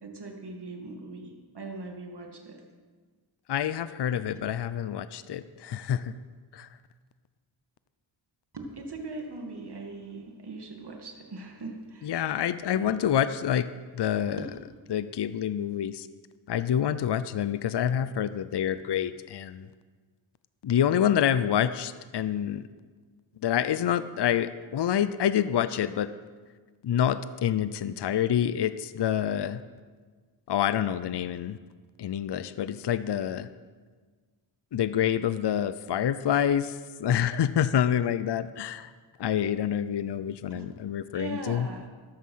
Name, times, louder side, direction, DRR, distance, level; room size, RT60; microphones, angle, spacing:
voice 1, 0.0-2.6 4.2-4.3 8.5-12.5 12.7-12.9 14.4-14.5 40.5-40.7 41.1-41.9, right 2 dB, 50° right, 2 dB, 2.4 m, -40 dB
voice 2, 3.5-6.2 6.5-6.7 12.0-13.7 13.9-14.5 14.9-16.1 16.5-19.7 20.6-22.7 23.4-26.1 26.8-29.6 30.5-31.6 32.0-33.5 34.7-38.9 39.2-41.7, left 9 dB, 55° left, 13 dB, 0.6 m, -27 dB
14.0 x 12.5 x 5.7 m, 1.5 s
cardioid pair, 65°, 50 cm